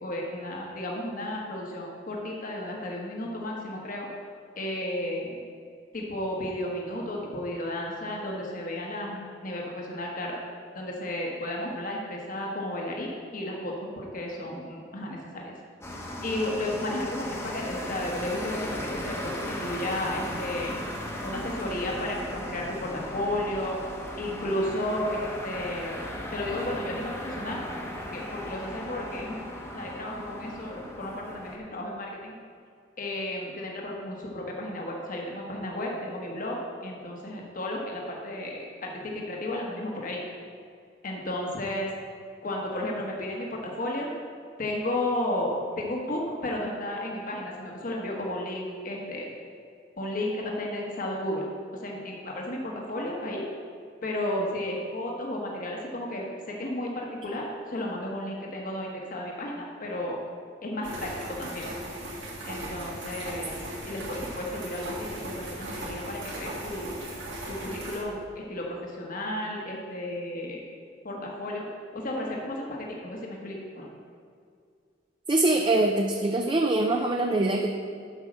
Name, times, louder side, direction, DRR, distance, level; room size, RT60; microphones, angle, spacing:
voice 1, 0.0-4.1 4.6-5.4 5.9-10.3 10.7-15.5 16.2-20.7 21.2-23.8 24.2-26.0 26.3-27.6 28.0-29.4 29.7-32.3 33.0-40.2 41.0-41.9 42.4-44.1 44.6-49.3 50.0-51.4 51.8-53.5 54.0-60.2 60.6-61.7 62.4-63.5 63.9-67.0 67.5-70.6 71.0-71.6 71.9-73.9, left 1 dB, 50° left, -1 dB, 1.2 m, -33 dB
sound 1, 15.8-31.6, left 1 dB, 15° left, 0.9 m, -37 dB
sound 2, 60.8-68.0, right 1 dB, 80° right, 2.2 m, -38 dB
voice 2, 75.3-77.7, right 2 dB, 25° right, 2 dB, 0.5 m, -23 dB
8.1 x 5.6 x 6.2 m, 2.3 s
head